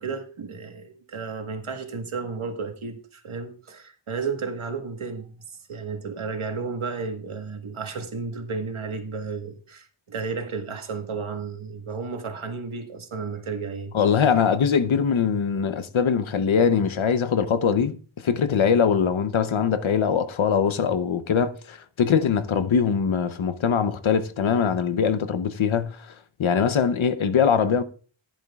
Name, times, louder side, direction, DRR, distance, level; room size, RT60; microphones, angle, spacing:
voice 1, 0.0-5.3 5.7-13.9, right 4 dB, 80° right, 1.6 m, -33 dB
voice 2, 13.9-18.0 18.2-26.1 26.4-27.8, left 6 dB, 75° left, 0.9 m, -22 dB
15.0 x 10.5 x 2.4 m
wide cardioid pair, 100°, 48 cm